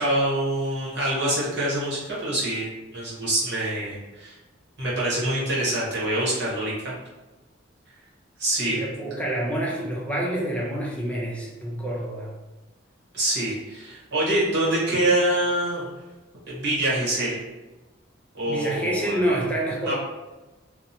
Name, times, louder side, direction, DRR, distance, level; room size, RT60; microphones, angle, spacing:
voice 1, 0.0-4.3 4.8-6.9 8.4-8.8 13.1-15.9 16.5-17.4 18.3-19.2 19.9-20.0, right 1 dB, 65° right, -7 dB, 1.1 m, -25 dB
voice 2, 8.7-12.3 18.4-19.9, right 1 dB, 5° left, -4 dB, 0.5 m, -27 dB
2.8 x 2.0 x 2.7 m, 1.1 s
head